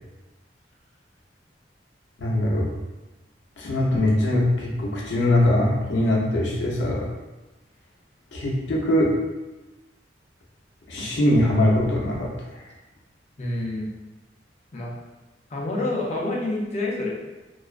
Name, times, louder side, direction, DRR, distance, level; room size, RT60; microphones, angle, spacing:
voice 1, 2.2-2.7 3.6-7.1 8.3-9.2 10.9-12.3 12.6-12.7, left 1 dB, 85° left, -3 dB, 0.6 m, -22 dB
voice 2, 13.4-13.9 14.7-15.0 15.5-17.2, left 2 dB, 40° left, -3 dB, 0.5 m, -28 dB
2.4 x 2.1 x 2.3 m, 1.1 s
head